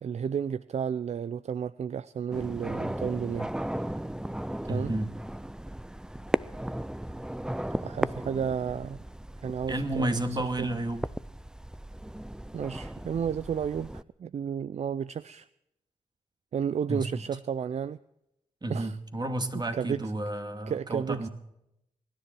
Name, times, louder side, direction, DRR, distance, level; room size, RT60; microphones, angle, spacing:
voice 1, 0.0-3.5 4.7-4.9 7.7-9.0 9.4-10.8 12.5-15.5 16.5-18.0 18.7-19.0 19.5-20.1 20.7-21.3, right 7 dB, 60° right, 17 dB, 0.4 m, -32 dB
sound 1, 2.3-14.0, right 1 dB, 5° right, 0.5 m, -36 dB
voice 2, 4.7-5.1 9.7-11.0 16.9-17.2 18.6-21.3, right 1 dB, 35° right, 7 dB, 2.3 m, -31 dB
23.5 x 10.5 x 4.5 m, 0.82 s
cardioid pair, 50°, 13 cm